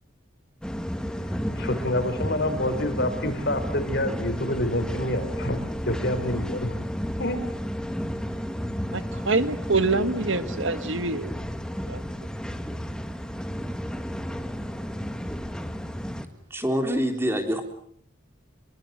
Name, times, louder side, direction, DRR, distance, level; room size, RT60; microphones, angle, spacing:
sound 1, 0.6-16.2, equal, 5° left, 1.7 m, -32 dB
voice 1, 1.2-6.9 7.2-7.4, left 1 dB, 55° left, 9 dB, 4.9 m, -28 dB
voice 2, 8.9-11.3 11.9-12.0, right 3 dB, 70° right, 11 dB, 1.8 m, -25 dB
voice 3, 16.5-17.6, equal, 10° right, 5 dB, 3.7 m, -25 dB
26.5 x 23.5 x 7.9 m, 0.64 s
head